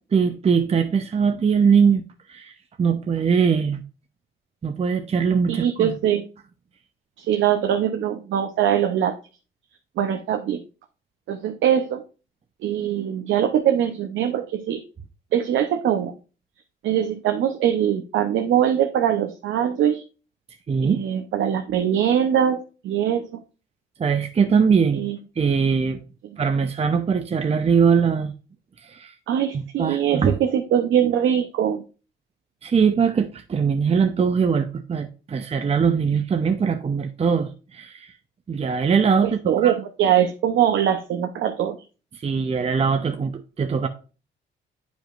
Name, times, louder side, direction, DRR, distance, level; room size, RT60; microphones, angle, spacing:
voice 1, 0.1-2.0 2.3-2.5 2.8-3.8 4.6-6.0 20.7-21.0 24.0-25.1 25.4-26.0 26.4-28.3 28.8-29.1 29.5-30.4 32.6-38.1 38.5-39.7 42.2-43.9, right 6 dB, 30° right, 0.7 m, -21 dB
voice 2, 5.5-6.2 7.2-9.1 10.0-10.6 11.3-12.0 12.6-14.8 15.3-16.1 16.8-20.0 20.8-23.4 24.9-25.2 26.2-26.4 29.3-31.8 39.2-41.8, right 9 dB, 75° right, 0.7 m, -22 dB
8.9 x 5.2 x 2.4 m
cardioid pair, 90°, 20 cm